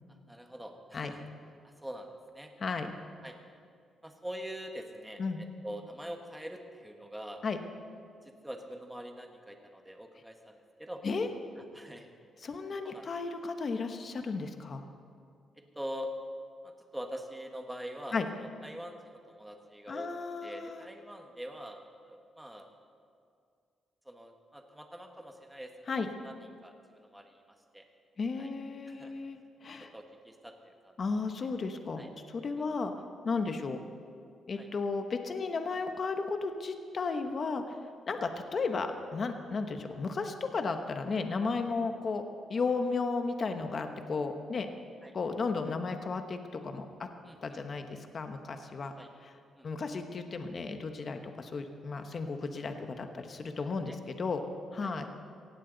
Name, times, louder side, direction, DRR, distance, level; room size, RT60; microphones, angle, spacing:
voice 1, 0.3-1.2 1.8-2.5 3.2-3.4 4.0-7.4 8.4-11.0 11.7-12.1 12.8-13.1 15.7-16.1 16.6-20.1 20.4-21.8 22.0-22.7 24.1-26.4 26.6-27.4 27.7-27.8 28.4-28.5 28.9-29.1 29.9-30.9 32.0-32.1 34.6-34.7 45.0-45.1 47.2-47.6 49.0-49.1 49.6-49.7 53.5-54.0 54.8-54.9, equal, 5° right, 3 dB, 1.5 m, -44 dB
voice 2, 2.6-3.0 5.2-5.4 7.4-7.6 11.0-11.3 12.4-14.9 18.1-18.3 19.9-20.9 25.9-26.1 28.2-29.9 31.0-32.9 33.2-33.8 34.5-37.8 38.1-42.2 42.5-44.7 45.1-47.1 47.4-48.9 49.2-49.3 49.6-54.4 54.7-55.1, left 4 dB, 40° left, 6 dB, 1.1 m, -34 dB
17.5 x 16.0 x 4.0 m, 2.3 s
cardioid pair, 125°, 0 cm